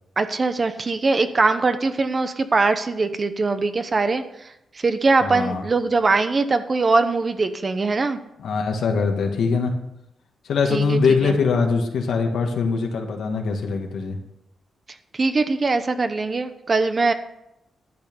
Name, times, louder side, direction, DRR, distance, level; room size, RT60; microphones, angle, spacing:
voice 1, 0.2-4.2 4.7-8.2 10.7-11.4 15.1-17.1, right 3 dB, 35° right, 9 dB, 0.9 m, -21 dB
voice 2, 5.2-5.6 8.4-9.7 10.5-14.2, left 5 dB, 80° left, 2 dB, 1.9 m, -22 dB
12.0 x 8.5 x 5.4 m, 0.84 s
cardioid pair, 110°, 0 cm